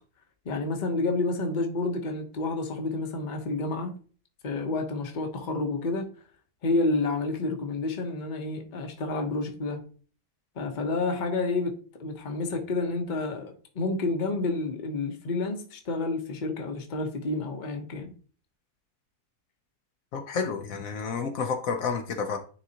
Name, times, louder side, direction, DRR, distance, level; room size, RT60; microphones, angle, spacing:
voice 1, 0.4-3.9 4.4-6.1 6.6-9.8 10.6-18.1, left 3 dB, 35° left, 0.9 m, -29 dB
voice 2, 20.1-22.4, left 5 dB, 70° left, 1.1 m, -30 dB
9.8 x 4.0 x 2.8 m
omnidirectional pair, 1.6 m